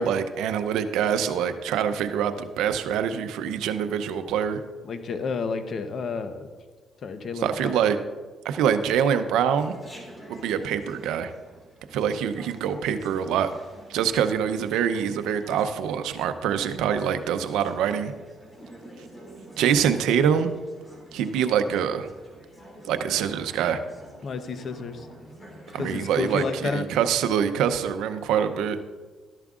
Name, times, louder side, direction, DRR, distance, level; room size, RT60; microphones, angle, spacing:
voice 1, 0.0-4.6 7.4-8.0 8.4-9.7 10.3-11.3 11.9-13.5 13.9-18.1 19.6-20.5 21.1-22.1 22.9-23.8 25.7-28.8, right 8 dB, 90° right, 9 dB, 0.6 m, -25 dB
voice 2, 4.8-6.5 7.0-7.7 24.2-25.1 25.8-26.8, left 4 dB, 55° left, 9 dB, 0.8 m, -30 dB
Chatter, 9.6-26.7, right 1 dB, 25° left, 2.6 m, -48 dB
13.0 x 11.0 x 2.5 m, 1.4 s
cardioid pair, 90°, 0 cm